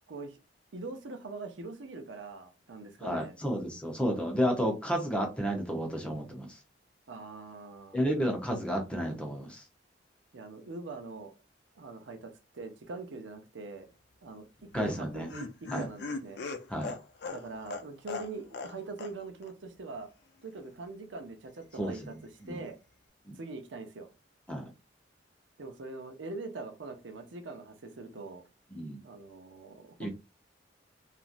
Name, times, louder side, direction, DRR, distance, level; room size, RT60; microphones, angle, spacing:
voice 1, 0.1-0.4 0.7-3.4 7.1-8.0 10.3-11.3 11.8-13.9 14.2-16.4 17.2-20.1 20.4-22.8 23.3-24.1 25.6-28.4 29.0-30.1, right 3 dB, 85° right, 0.6 m, -43 dB
voice 2, 3.0-6.6 7.9-9.6 14.7-15.3 15.7-15.9 16.7-16.9 21.8-21.9 22.4-22.6 23.3-23.4 24.5-24.7 28.7-29.0 30.0-30.1, equal, 5° left, 0.8 m, -31 dB
Laughter, 14.7-18.7 19.0-19.1 19.4-19.5, left 4 dB, 65° left, 0.5 m, -39 dB
3.0 x 2.5 x 2.5 m
head